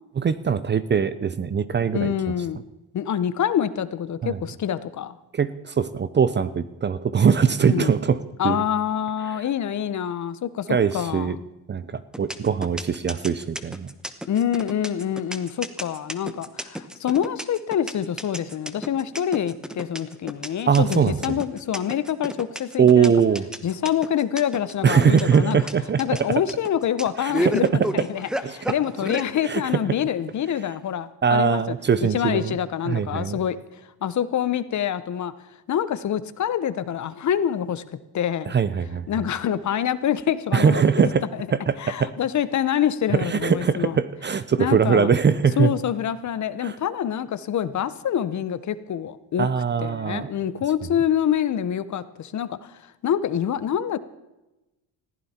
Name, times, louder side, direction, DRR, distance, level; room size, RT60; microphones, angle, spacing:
voice 1, 0.2-2.1 4.2-4.4 5.3-8.6 9.3-9.4 10.7-11.4 11.7-13.9 20.7-21.4 22.8-23.4 24.8-26.0 27.2-27.5 28.4-28.6 29.4-29.8 31.2-32.6 32.9-33.4 38.5-39.1 40.5-41.2 41.5-42.1 43.1-45.7 46.6-46.8 49.4-50.3, right 6 dB, 25° right, 15 dB, 0.6 m, -21 dB
voice 2, 1.9-2.6 2.9-5.1 7.6-7.9 8.4-11.3 14.3-23.1 23.6-25.6 26.0-27.7 27.9-31.6 32.1-33.6 34.0-35.3 35.7-37.8 38.1-38.5 39.1-41.5 41.8-44.0 44.6-45.1 45.6-49.5 49.8-54.0, left 9 dB, 45° left, 15 dB, 0.9 m, -26 dB
sound 1, 12.1-29.3, equal, ahead, 0.9 m, -31 dB
20.5 x 15.0 x 4.3 m, 1.0 s
cardioid pair, 140°, 40 cm